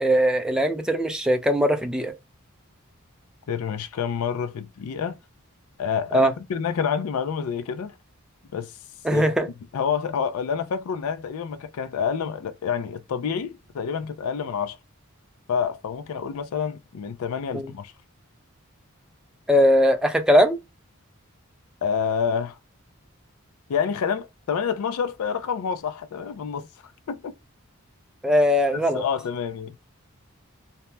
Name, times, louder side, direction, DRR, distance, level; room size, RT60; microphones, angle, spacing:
voice 1, 0.0-2.1 6.1-6.3 9.0-9.5 17.5-17.7 19.5-20.6 28.2-29.0, equal, 5° right, 0.4 m, -20 dB
voice 2, 3.5-5.2 5.8-7.9 8.5-8.7 9.1-9.3 9.7-14.8 15.5-17.9 21.8-22.6 23.7-26.7 27.1-27.3 28.7-29.7, left 7 dB, 80° left, 0.4 m, -28 dB
2.8 x 2.1 x 3.1 m
head